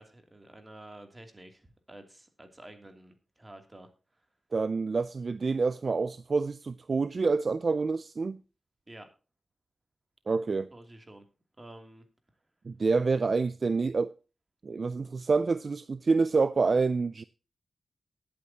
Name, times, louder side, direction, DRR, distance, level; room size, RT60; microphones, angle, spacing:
voice 1, 0.0-3.9 4.2-4.3 8.9-9.1 10.7-11.2 11.6-12.1, right 1 dB, 25° right, 2.8 m, -50 dB
voice 2, 4.5-8.4 10.3-10.7 12.6-14.1 14.6-17.2, right 4 dB, 55° right, 0.4 m, -27 dB
19.5 x 8.6 x 2.9 m
wide cardioid pair, 85°, 0 cm